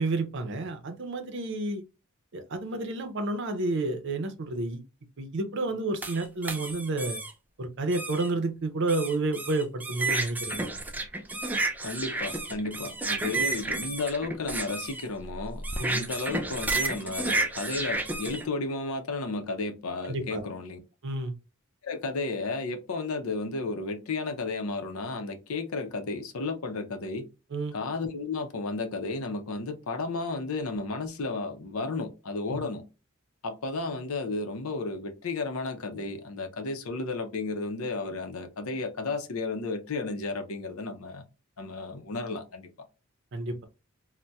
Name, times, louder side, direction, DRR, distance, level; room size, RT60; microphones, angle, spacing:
voice 1, 0.0-1.8 2.3-4.8 5.2-7.2 7.6-10.7 15.8-16.0 20.1-20.4 21.0-21.3 27.5-27.7 32.5-32.6 43.3-43.6, right 2 dB, 60° right, 0.6 m, -30 dB
sound 1, 6.0-7.3 7.9-8.3 8.9-18.4, right 2 dB, 10° right, 0.3 m, -31 dB
voice 2, 11.8-20.8 21.8-27.3 27.7-32.8 33.4-41.2 41.6-42.7, left 3 dB, 85° left, 0.6 m, -33 dB
4.0 x 2.1 x 2.2 m
head